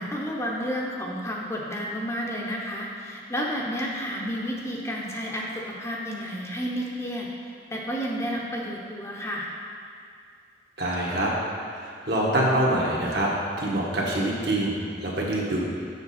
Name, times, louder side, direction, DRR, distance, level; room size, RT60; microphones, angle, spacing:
voice 1, 0.0-7.3 7.7-9.5, equal, 15° left, -2 dB, 0.6 m, -31 dB
voice 2, 10.8-11.3 11.7-13.3 13.6-15.6, right 1 dB, 65° right, -3 dB, 1.4 m, -25 dB
7.1 x 6.4 x 4.2 m, 2.3 s
head